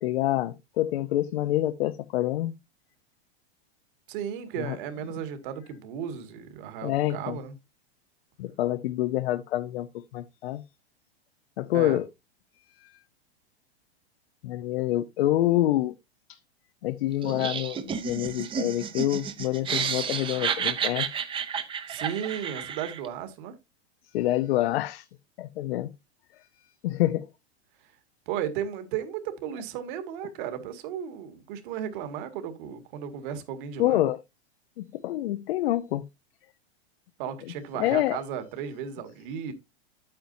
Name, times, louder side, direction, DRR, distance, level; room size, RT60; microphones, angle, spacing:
voice 1, 0.0-2.5 4.6-4.8 6.8-7.4 8.4-10.6 11.6-12.1 12.8-12.9 14.4-15.9 16.3-16.4 16.8-17.8 18.0-21.2 24.1-25.1 25.4-25.9 26.8-27.3 33.8-34.2 34.8-36.0 37.7-38.2, left 14 dB, 65° left, 0.8 m, -27 dB
voice 2, 4.1-7.5 11.7-12.0 21.9-23.5 28.3-34.1 37.2-39.5, right 9 dB, 50° right, 2.0 m, -35 dB
Laughter, 17.2-23.1, right 7 dB, 15° right, 0.8 m, -31 dB
9.3 x 8.8 x 2.7 m
supercardioid pair, 145°, 33 cm